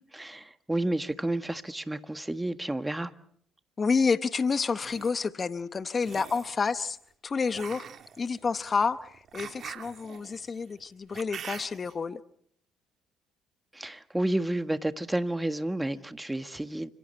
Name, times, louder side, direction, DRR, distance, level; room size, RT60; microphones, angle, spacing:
voice 1, 0.1-3.1 13.7-16.9, right 1 dB, 10° right, 1.5 m, -31 dB
voice 2, 3.8-7.0 7.2-7.8 8.2-12.2, left 5 dB, 35° left, 0.9 m, -29 dB
sound 1, 4.6-5.1 6.0-6.6 7.5-11.9, right 8 dB, 55° right, 1.5 m, -44 dB
29.5 x 25.5 x 4.5 m
hypercardioid pair, 55°, 0 cm